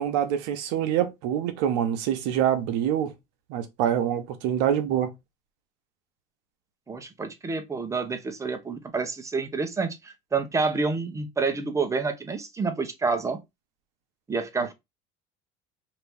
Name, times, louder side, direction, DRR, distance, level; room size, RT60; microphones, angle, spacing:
voice 1, 0.0-3.1 3.5-5.1, right 10 dB, 80° right, 0.9 m, -25 dB
voice 2, 6.9-13.4 14.3-14.7, right 4 dB, 15° right, 0.8 m, -28 dB
2.9 x 2.8 x 3.5 m
supercardioid pair, 105°, 17 cm